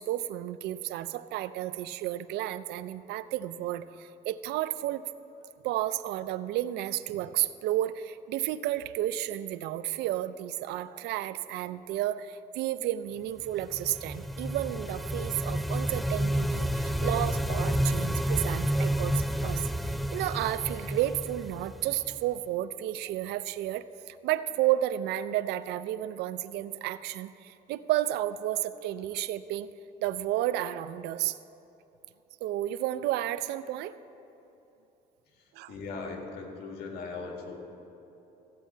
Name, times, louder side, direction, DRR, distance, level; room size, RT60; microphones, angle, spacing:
voice 1, 0.0-5.1 5.6-29.7 30.0-31.4 32.4-34.0 35.5-35.7, right 13 dB, 80° right, 15 dB, 0.4 m, -32 dB
sound 1, 13.5-22.2, equal, ahead, 0.3 m, -30 dB
voice 2, 35.3-37.6, left 4 dB, 70° left, 1 dB, 2.1 m, -39 dB
15.5 x 8.3 x 4.5 m, 2.9 s
cardioid pair, 110°, 17 cm